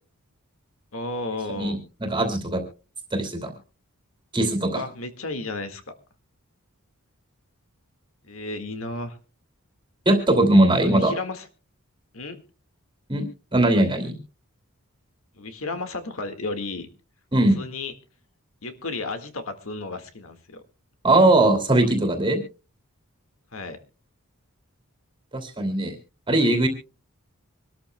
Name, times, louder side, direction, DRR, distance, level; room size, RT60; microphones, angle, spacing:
voice 1, 0.9-1.8 4.7-5.8 8.2-9.2 10.9-11.5 12.1-12.4 15.3-16.9 17.6-17.9 18.6-20.6 23.5-23.8, left 3 dB, 65° left, 8 dB, 1.8 m, -33 dB
voice 2, 1.5-2.6 3.1-3.5 4.3-4.8 10.1-11.1 13.1-14.2 17.3-17.6 21.0-22.4 25.3-25.9 26.3-26.7, right 1 dB, 20° right, 5 dB, 2.6 m, -20 dB
25.5 x 13.0 x 2.2 m, 0.33 s
head